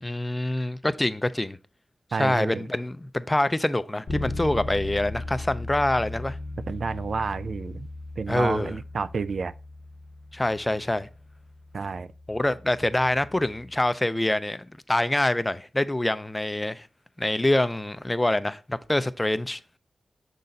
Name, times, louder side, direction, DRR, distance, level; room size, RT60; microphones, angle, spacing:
voice 1, 0.0-1.6 2.2-6.4 8.3-8.7 10.3-11.1 12.3-16.9 17.2-19.6, left 1 dB, 15° left, 0.4 m, -25 dB
voice 2, 2.1-2.7 6.7-7.9 8.2-9.5 11.7-12.1, right 5 dB, 65° right, 0.3 m, -30 dB
Bass guitar, 4.1-13.9, left 2 dB, 55° left, 0.9 m, -38 dB
6.5 x 4.0 x 4.0 m
cardioid pair, 60°, 0 cm